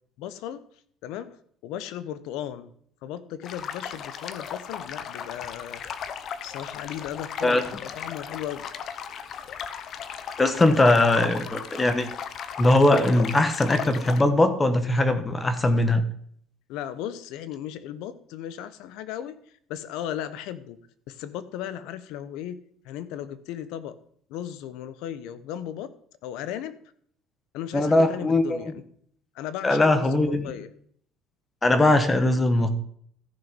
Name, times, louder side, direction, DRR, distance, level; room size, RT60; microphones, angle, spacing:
voice 1, 0.2-0.7 1.0-1.4 1.6-2.7 3.0-5.8 6.4-8.7 16.7-19.4 19.7-20.8 21.1-22.6 22.8-24.0 24.3-25.9 26.2-26.8 27.5-28.7 29.3-30.7, left 10 dB, 75° left, 14 dB, 1.0 m, -36 dB
sound 1, 3.4-14.2, left 7 dB, 45° left, 1.0 m, -36 dB
voice 2, 10.4-12.1 12.6-16.0 27.7-28.6 29.6-30.5 31.6-32.7, left 2 dB, 15° left, 9 dB, 1.4 m, -20 dB
14.5 x 6.3 x 5.3 m, 0.62 s
cardioid pair, 125°, 0 cm